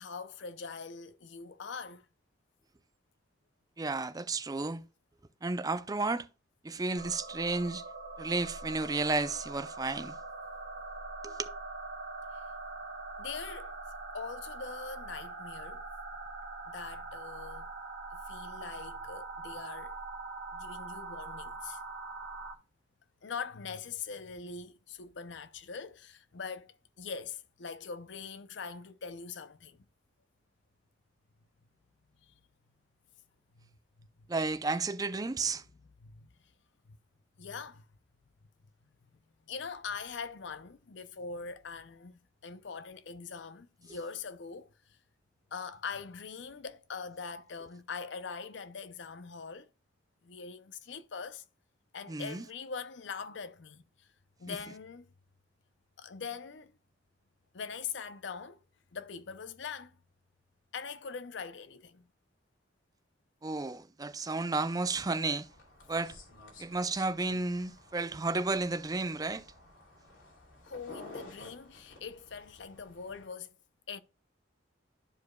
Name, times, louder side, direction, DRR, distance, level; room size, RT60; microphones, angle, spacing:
voice 1, 0.0-2.1 13.2-13.7 14.1-15.8 16.7-17.7 18.1-19.9 20.5-21.8 23.2-29.8 32.2-32.3 33.6-33.7 34.0-34.1 36.0-36.3 36.9-37.0 37.4-37.9 39.1-39.2 39.5-44.7 45.5-49.7 50.2-51.4 51.9-54.1 54.4-55.1 56.0-56.7 57.5-58.6 58.9-60.0 60.7-62.1 70.6-73.5 73.9-74.0, left 5 dB, 65° left, 0.6 m, -42 dB
voice 2, 3.8-4.8 5.4-6.3 6.6-7.8 8.2-10.1 11.2-11.4 34.3-35.6 43.9-44.0 52.1-52.4 54.5-54.6 63.4-65.5 65.9-66.1 66.6-69.5, right 3 dB, 20° right, 0.4 m, -32 dB
sound 1, 7.0-22.6, right 3 dB, 65° right, 1.2 m, -43 dB
sound 2, 65.4-73.3, left 2 dB, 85° left, 2.7 m, -53 dB
13.0 x 4.8 x 2.2 m
head